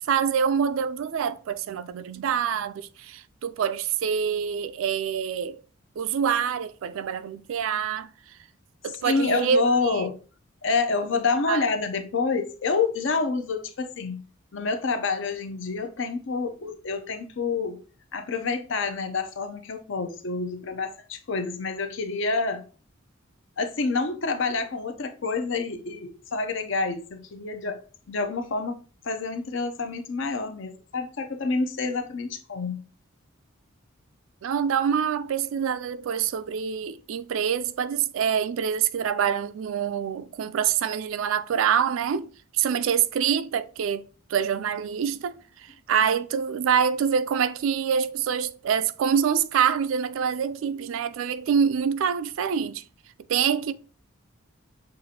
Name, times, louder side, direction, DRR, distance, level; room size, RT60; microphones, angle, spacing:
voice 1, 0.1-5.6 6.0-8.1 8.8-10.0 11.5-11.6 34.4-45.4 45.9-52.8 53.3-53.7, right 7 dB, 70° right, 0.3 m, -26 dB
voice 2, 9.0-10.2 10.6-14.2 14.5-17.8 18.1-22.6 23.6-27.8 28.1-32.8, left 4 dB, 60° left, 0.6 m, -28 dB
6.5 x 2.5 x 2.7 m
head